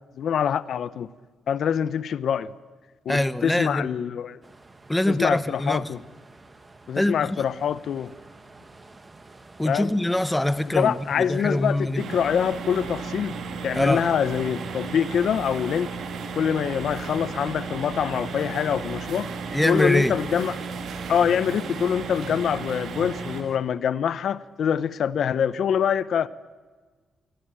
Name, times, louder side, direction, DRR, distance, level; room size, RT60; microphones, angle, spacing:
voice 1, 0.2-1.1 1.5-2.5 3.1-4.4 5.1-6.0 6.9-8.1 9.6-9.9 10.7-13.3 13.6-16.0 16.4-19.3 19.6-20.6 21.1-26.3, left 8 dB, 65° left, 17 dB, 0.7 m, -25 dB
voice 2, 3.1-3.9 4.9-5.9 7.0-7.4 9.6-11.0 11.3-12.0 13.7-14.1 19.5-20.1, left 1 dB, 10° left, 14 dB, 0.9 m, -23 dB
sound 1, 4.4-23.6, right 2 dB, 20° right, 1.9 m, -47 dB
sound 2, 12.0-23.4, right 5 dB, 75° right, 2.3 m, -34 dB
23.5 x 18.0 x 8.9 m, 1.4 s
cardioid pair, 115°, 0 cm